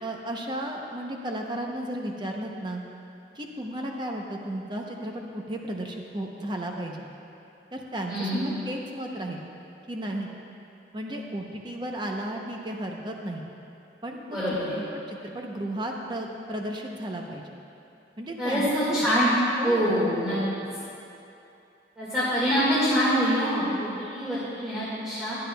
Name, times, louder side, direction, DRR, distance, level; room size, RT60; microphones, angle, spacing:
voice 1, 0.0-2.8 3.3-7.1 7.7-9.4 9.9-10.3 10.9-13.5 14.0-14.6 14.9-17.6 18.2-19.1 19.6-19.9, right 1 dB, 25° right, 1 dB, 0.7 m, -34 dB
voice 2, 8.1-8.4 14.3-14.8 18.4-19.3 19.6-20.4 22.0-25.4, equal, 5° right, -12 dB, 1.9 m, -25 dB
15.0 x 10.5 x 2.3 m, 2.8 s
head